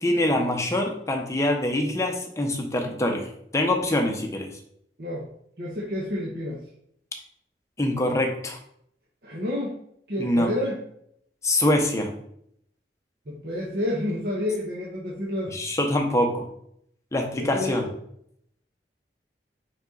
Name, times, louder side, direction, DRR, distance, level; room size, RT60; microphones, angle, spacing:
voice 1, 0.0-4.5 7.8-8.6 10.2-10.5 11.4-12.1 15.5-16.5 17.1-17.8, left 1 dB, 15° left, 2 dB, 0.9 m, -24 dB
voice 2, 5.6-6.6 9.2-9.7 10.1-10.8 13.3-15.5 17.4-17.9, left 1 dB, 60° right, -5 dB, 1.3 m, -29 dB
5.7 x 5.3 x 4.0 m, 0.71 s
head